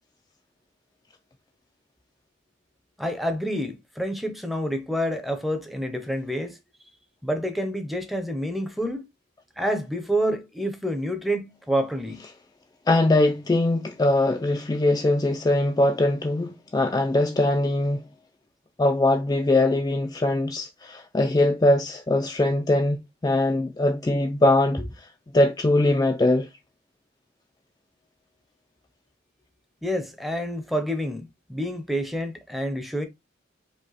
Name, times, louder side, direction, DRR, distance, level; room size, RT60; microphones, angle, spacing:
voice 1, 3.0-6.6 7.2-9.1 9.6-12.2 29.8-33.0, equal, ahead, 0.7 m, -28 dB
voice 2, 12.9-18.0 18.8-25.1 25.3-26.5, left 2 dB, 20° left, 0.4 m, -22 dB
5.1 x 2.2 x 4.0 m
head